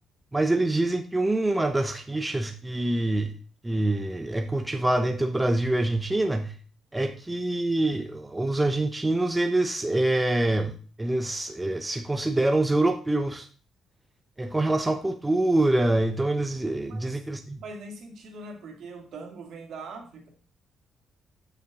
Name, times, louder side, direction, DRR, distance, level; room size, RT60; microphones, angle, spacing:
voice 1, 0.3-3.3 3.6-6.5 6.9-13.5 14.4-17.6, right 2 dB, 15° right, 7 dB, 0.7 m, -25 dB
voice 2, 16.9-17.2 17.6-20.3, right 3 dB, 70° right, 2 dB, 2.3 m, -41 dB
9.4 x 5.8 x 3.8 m, 0.38 s
cardioid pair, 90°, 0 cm